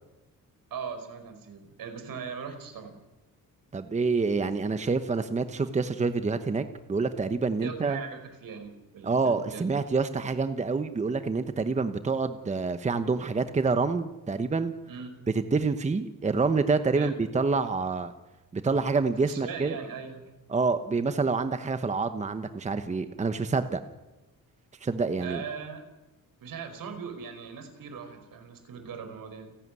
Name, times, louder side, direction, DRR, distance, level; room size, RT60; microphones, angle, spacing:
voice 1, 0.7-2.9 7.6-9.8 14.9-15.2 16.9-17.2 19.3-20.3 25.2-25.8 26.4-29.6, right 6 dB, 75° right, 7 dB, 5.0 m, -40 dB
voice 2, 3.7-6.6 6.9-8.0 9.0-14.7 15.3-18.1 18.5-19.8 20.5-23.8 24.8-25.4, right 4 dB, 20° right, 10 dB, 1.0 m, -27 dB
29.5 x 12.0 x 9.6 m, 1.1 s
wide cardioid pair, 165°, 34 cm